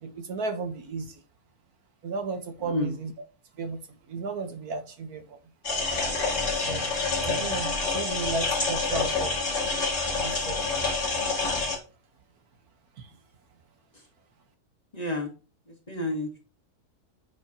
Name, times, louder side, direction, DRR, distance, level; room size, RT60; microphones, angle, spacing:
voice 1, 0.0-1.2 2.0-3.1 3.6-3.8 4.1-5.4 6.6-6.9 7.2-9.3 10.2-10.9 11.4-11.5 13.0-13.1, right 3 dB, 70° right, 1.7 m, -34 dB
voice 2, 2.6-2.9 13.9-14.0 14.9-15.3 15.7-16.4, left 2 dB, 25° left, 1.6 m, -31 dB
sound 1, 5.6-11.8, left 3 dB, 50° left, 2.7 m, -27 dB
9.3 x 6.6 x 2.9 m
omnidirectional pair, 1.7 m